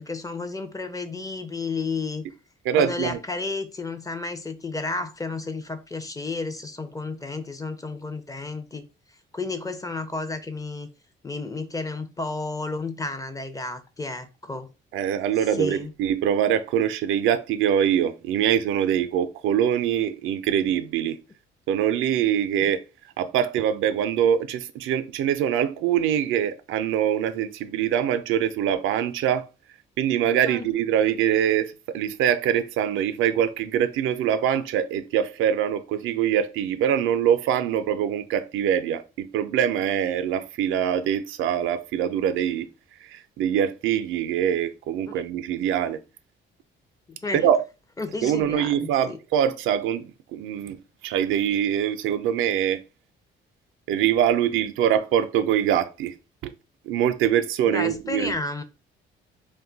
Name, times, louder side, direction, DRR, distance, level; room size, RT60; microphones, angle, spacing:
voice 1, 0.0-2.2 2.7-8.9 9.3-10.9 11.2-14.7 15.6-15.9 22.7-22.8 30.5-30.7 45.1-45.2 47.1-47.5 48.0-49.2 57.6-58.6, left 3 dB, 15° left, 0.5 m, -32 dB
voice 2, 2.6-3.2 14.9-21.2 21.7-22.8 23.2-29.5 30.0-42.7 43.0-46.0 47.3-47.6 48.2-50.8 51.0-52.8 53.9-56.1 56.4-56.5 56.9-58.3, right 9 dB, 85° right, 0.4 m, -24 dB
2.5 x 2.2 x 3.8 m
cardioid pair, 90°, 20 cm